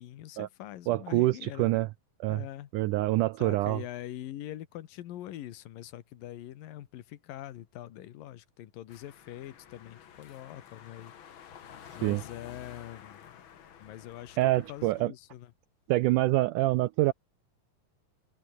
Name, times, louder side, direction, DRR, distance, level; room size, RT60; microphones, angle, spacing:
voice 1, 0.0-1.7 2.3-2.7 3.4-11.1 11.6-13.4 13.8-14.4 14.7-15.5, left 13 dB, 75° left, 3.0 m, -43 dB
voice 2, 0.9-1.9 2.2-2.4 2.7-3.8 12.0-12.2 14.4-15.1 15.9-17.1, right 18 dB, 80° right, 1.9 m, -26 dB
sound 1, 8.9-15.0, left 9 dB, 55° left, 1.5 m, -51 dB
omnidirectional pair, 4.1 m